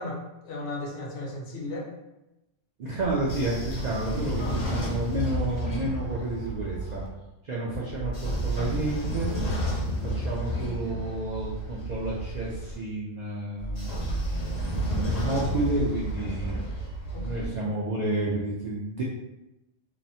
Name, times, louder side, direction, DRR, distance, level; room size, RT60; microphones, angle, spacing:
voice 1, 0.0-1.9 4.4-4.6 17.1-17.7, left 2 dB, 70° left, -3 dB, 1.0 m, -36 dB
voice 2, 2.8-7.0 7.4-9.3 10.0-14.1 14.8-16.8 17.2-19.0, right 2 dB, 75° right, -5 dB, 0.4 m, -30 dB
Train / Sliding door, 3.0-7.1 7.9-12.7 13.6-17.5, right 1 dB, 40° left, 0.6 m, -31 dB
2.9 x 2.0 x 2.6 m, 0.95 s
omnidirectional pair, 1.3 m